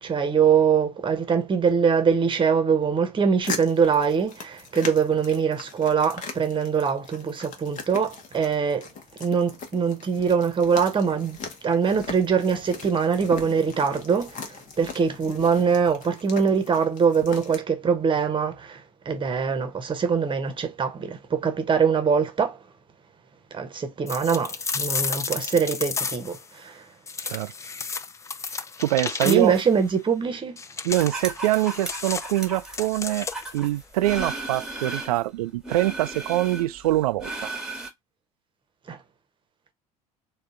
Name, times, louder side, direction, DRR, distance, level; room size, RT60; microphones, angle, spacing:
voice 1, 0.0-8.9 9.2-11.4 11.6-22.6 23.5-26.8 29.2-30.5 38.9-39.0, right 6 dB, 25° right, 1.0 m, -23 dB
sound 1, 3.4-17.6, left 5 dB, 40° left, 1.1 m, -40 dB
sound 2, 24.1-26.4 27.1-29.7 30.6-33.6, left 5 dB, 15° left, 0.3 m, -32 dB
voice 2, 28.5-29.5 30.8-33.3 33.5-37.5, right 16 dB, 65° right, 0.4 m, -24 dB
sound 3, 30.9-35.2 35.6-37.9, right 2 dB, 5° right, 1.3 m, -35 dB
3.8 x 2.4 x 3.5 m
figure-of-eight pair, 65°, 20 cm